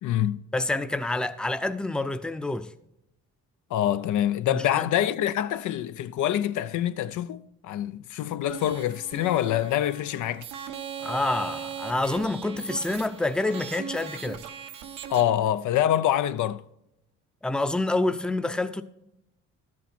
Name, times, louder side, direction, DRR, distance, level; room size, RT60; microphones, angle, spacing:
voice 1, 0.0-0.4 3.7-10.5 15.1-16.6, left 11 dB, 75° left, 0.6 m, -25 dB
voice 2, 0.5-2.7 4.5-4.9 11.0-14.4 17.4-18.8, left 2 dB, 5° left, 0.6 m, -27 dB
sound 1, 8.5-15.2, right 8 dB, 85° right, 1.1 m, -39 dB
12.5 x 8.6 x 4.3 m
cardioid pair, 90°, 30 cm